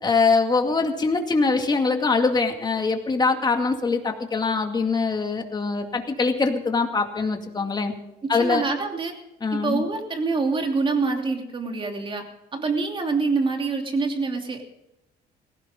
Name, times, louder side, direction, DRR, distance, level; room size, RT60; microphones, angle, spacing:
voice 1, 0.0-7.9 8.3-8.6 9.4-9.8, left 4 dB, 25° left, 4 dB, 2.2 m, -23 dB
voice 2, 8.2-9.1 9.5-12.2 12.5-14.6, right 4 dB, 30° right, 3 dB, 3.0 m, -25 dB
18.0 x 16.5 x 3.7 m, 0.90 s
cardioid pair, 110°, 17 cm